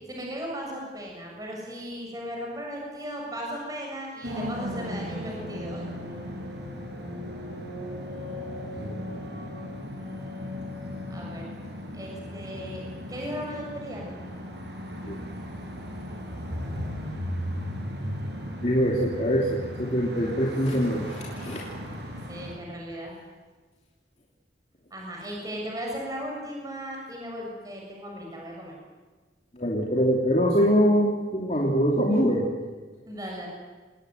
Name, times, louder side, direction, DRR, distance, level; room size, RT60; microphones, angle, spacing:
voice 1, 0.1-5.9 11.1-11.4 11.9-12.8 13.1-14.0 22.3-23.1 24.9-28.8 33.1-33.5, equal, 20° right, -1 dB, 6.9 m, -36 dB
sound 1, 4.2-22.6, equal, 75° right, 6.6 m, -36 dB
voice 2, 18.6-21.6 29.5-32.5, equal, 40° left, -2 dB, 3.0 m, -23 dB
27.5 x 20.0 x 9.6 m, 1.4 s
head